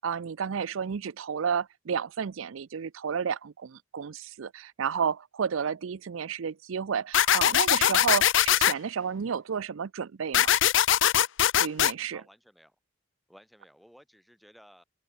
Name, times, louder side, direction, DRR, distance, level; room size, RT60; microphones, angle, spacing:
voice 1, 0.0-10.5 11.6-12.2, right 6 dB, 80° right, 0.5 m, -31 dB
sound 1, 7.1-8.7 10.3-11.9, left 10 dB, 70° left, 0.6 m, -21 dB
voice 2, 12.1-12.8 13.3-14.8, equal, ahead, 5.5 m, -56 dB
open air
head